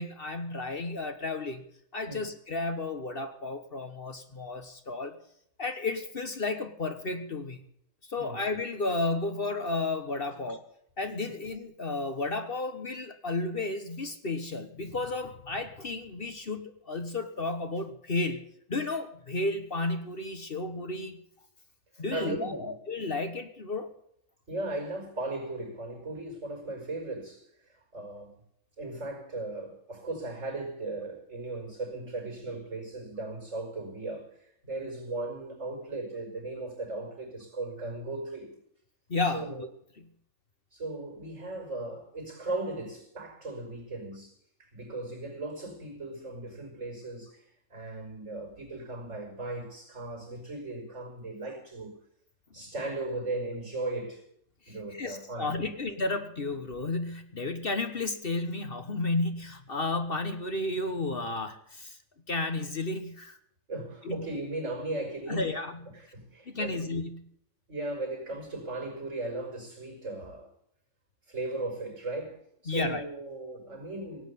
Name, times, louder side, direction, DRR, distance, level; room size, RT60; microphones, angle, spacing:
voice 1, 0.0-1.6 1.9-5.2 5.6-7.6 8.1-10.6 11.0-21.2 22.0-23.9 39.1-39.7 40.0-40.1 54.7-62.0 62.3-63.4 64.0-64.3 65.3-66.0 66.5-67.3 72.7-73.0, left 3 dB, 45° left, 1.4 m, -33 dB
voice 2, 22.1-22.7 24.5-28.4 28.8-38.5 39.3-39.6 40.7-44.3 44.6-47.5 47.7-51.9 52.5-54.2 54.7-55.7 63.7-65.5 65.9-66.9 67.7-70.5 71.3-74.2, right 2 dB, 70° right, 5.3 m, -37 dB
17.0 x 9.0 x 8.2 m
omnidirectional pair, 1.3 m